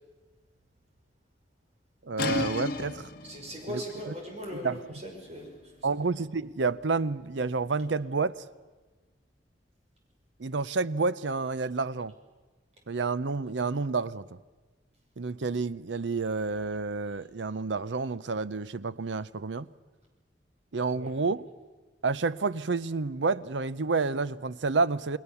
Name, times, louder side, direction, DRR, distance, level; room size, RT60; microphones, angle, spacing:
voice 1, 2.0-3.1 3.7-3.8 4.1-4.2 4.5-4.8 5.8-8.4 10.4-12.1 12.9-14.3 15.2-19.7 20.7-21.5 22.0-25.2, right 4 dB, 90° right, 0.7 m, -29 dB
sound 1, 2.2-7.8, left 3 dB, 55° left, 1.6 m, -37 dB
voice 2, 3.2-6.0 20.9-21.1, equal, 35° right, 5.9 m, -40 dB
29.5 x 20.5 x 7.0 m
head